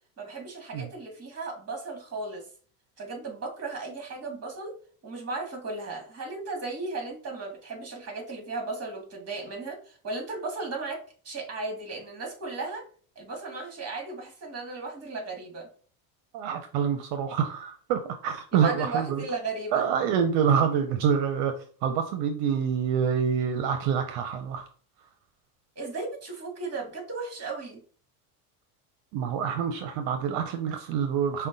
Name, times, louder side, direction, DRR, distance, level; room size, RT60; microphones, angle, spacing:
voice 1, 0.2-2.5 3.0-4.7 5.0-12.8 13.2-15.7 18.5-19.9 25.8-27.8, right 3 dB, 30° right, 1 dB, 2.1 m, -35 dB
voice 2, 16.3-19.2 19.7-21.5 21.8-24.7 29.1-31.5, right 7 dB, 75° right, 7 dB, 0.7 m, -26 dB
4.9 x 2.3 x 3.9 m, 0.43 s
supercardioid pair, 105°, 46 cm